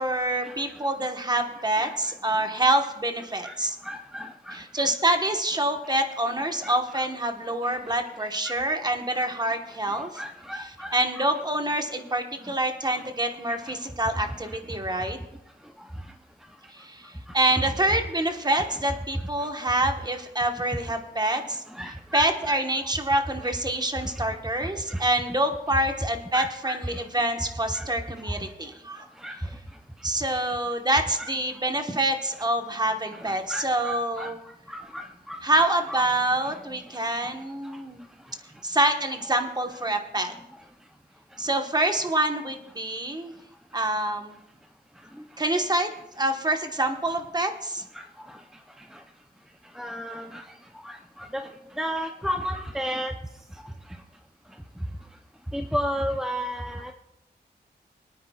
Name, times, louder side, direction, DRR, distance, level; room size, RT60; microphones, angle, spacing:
voice 1, 0.0-3.8 4.5-10.2 10.9-15.2 16.7-21.6 22.1-29.0 30.0-34.4 35.4-38.0 38.6-40.3 41.4-43.3 43.7-44.4 45.4-45.9 46.2-47.8, right 1 dB, 25° right, 5 dB, 1.2 m, -26 dB
voice 2, 3.8-4.6 6.6-6.7 8.5-8.6 9.9-11.2 17.6-17.7 21.8-22.6 24.9-25.0 26.3-26.8 27.7-27.8 29.2-29.4 31.2-31.3 33.2-34.3 34.7-36.0 49.8-50.4 50.8-51.0 51.3-51.4 51.8-53.1 55.5-56.9, equal, 5° right, 5 dB, 0.6 m, -33 dB
23.5 x 9.4 x 2.3 m, 0.86 s
wide cardioid pair, 85°, 18 cm